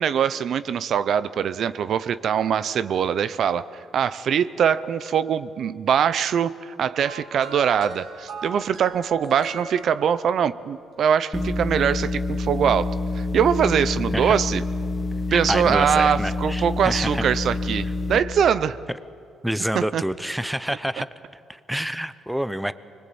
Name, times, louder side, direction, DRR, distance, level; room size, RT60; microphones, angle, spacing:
voice 1, 0.0-14.6 15.3-18.8 19.7-20.0, right 8 dB, 65° right, 15 dB, 0.7 m, -22 dB
sound 1, 7.0-10.6 11.6-11.8, right 3 dB, 80° right, 4.2 m, -39 dB
sound 2, 11.3-18.2, left 2 dB, 20° left, 1.8 m, -27 dB
voice 2, 15.3-17.2 19.4-21.1 21.5-22.7, equal, 5° right, 14 dB, 0.8 m, -27 dB
25.0 x 21.0 x 8.7 m, 2.4 s
cardioid pair, 90°, 0 cm